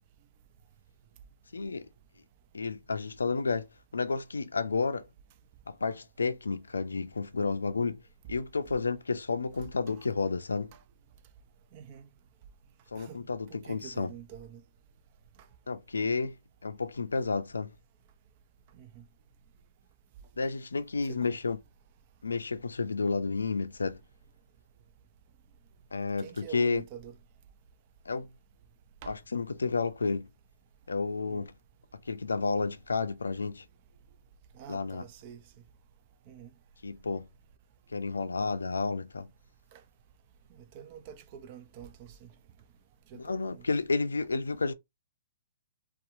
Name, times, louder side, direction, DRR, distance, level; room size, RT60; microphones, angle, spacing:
voice 1, 1.5-1.9 2.5-3.7 3.9-5.0 5.7-8.0 8.3-10.7 12.9-14.1 15.7-16.4 16.6-17.7 20.4-21.6 22.2-24.0 25.9-26.8 28.1-28.3 29.1-30.3 30.9-31.5 32.1-33.6 34.7-35.0 36.8-37.3 37.9-39.3 43.1-44.7, left 4 dB, 80° left, 0.4 m, -31 dB
voice 2, 11.7-12.1 13.0-14.6 18.7-19.0 21.0-21.4 26.2-27.1 29.0-29.1 31.2-31.4 34.5-35.4 36.3-36.5 39.7-39.8 40.5-42.3 43.1-43.6, right 8 dB, 40° right, 0.5 m, -47 dB
2.7 x 2.3 x 2.5 m
figure-of-eight pair, 120°, 0 cm